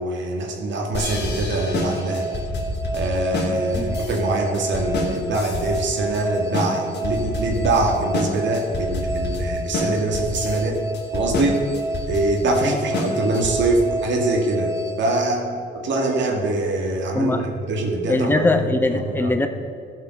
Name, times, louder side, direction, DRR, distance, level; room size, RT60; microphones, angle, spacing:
voice 1, 0.0-2.4 2.9-10.8 11.1-11.6 12.1-17.4 17.7-18.5 18.9-19.3, right 2 dB, 70° right, 2 dB, 2.1 m, -24 dB
sound 1, 0.9-13.8, left 2 dB, 60° left, 2.2 m, -28 dB
sound 2, 1.7-16.1, right 1 dB, 15° right, 0.7 m, -30 dB
voice 2, 12.6-13.0 17.1-17.4 18.1-19.5, left 2 dB, 10° left, 6 dB, 0.9 m, -21 dB
14.0 x 5.6 x 6.4 m, 2.3 s
cardioid pair, 90°, 20 cm